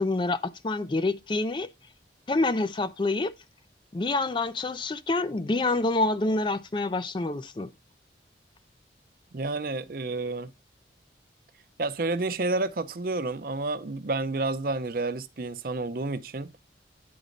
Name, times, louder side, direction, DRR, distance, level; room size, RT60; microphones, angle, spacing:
voice 1, 0.0-1.7 2.3-3.3 3.9-7.7, left 2 dB, 25° left, 0.4 m, -27 dB
voice 2, 9.3-10.5 11.8-16.5, right 3 dB, 50° right, 0.6 m, -30 dB
9.5 x 4.0 x 5.1 m
head